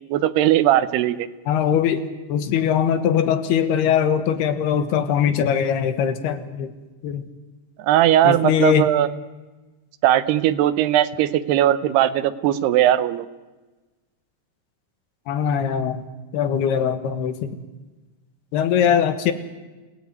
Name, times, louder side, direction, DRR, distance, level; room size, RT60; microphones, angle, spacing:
voice 1, 0.1-1.3 7.8-9.1 10.0-13.3, right 12 dB, 85° right, 13 dB, 3.0 m, -18 dB
voice 2, 1.5-6.7 7.0-7.2 8.2-8.9 15.3-16.1 16.3-17.6 18.5-19.3, left 8 dB, 80° left, 10 dB, 3.5 m, -21 dB
28.5 x 18.0 x 9.5 m, 1.2 s
omnidirectional pair, 4.6 m